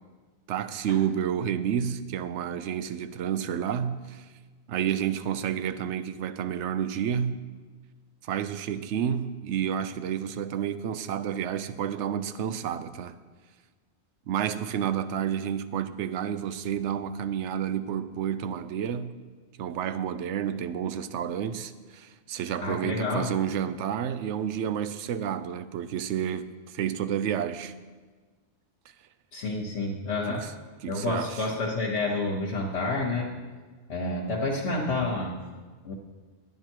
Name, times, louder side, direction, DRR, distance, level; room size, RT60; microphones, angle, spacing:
voice 1, 0.5-4.3 4.7-7.4 8.2-13.1 14.3-19.1 19.6-27.7 30.3-30.5 30.8-31.5, right 9 dB, 80° right, 0.9 m, -30 dB
voice 2, 22.6-23.3 29.3-30.5 30.9-33.4 33.9-35.4 35.8-35.9, left 2 dB, 70° left, 1.4 m, -29 dB
11.5 x 9.1 x 4.6 m
omnidirectional pair, 1.2 m